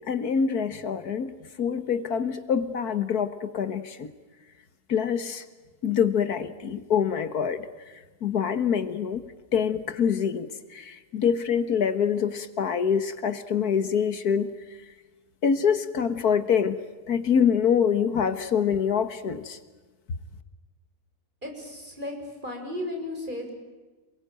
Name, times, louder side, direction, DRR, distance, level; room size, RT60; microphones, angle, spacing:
voice 1, 0.1-4.1 4.9-5.4 5.8-7.9 8.2-9.2 9.5-14.5 15.4-16.8 17.1-19.6, left 7 dB, 75° left, 11 dB, 1.9 m, -25 dB
voice 2, 21.4-22.1 22.4-23.5, left 1 dB, 30° right, 2 dB, 7.0 m, -34 dB
28.0 x 22.5 x 9.1 m, 1.2 s
omnidirectional pair, 1.7 m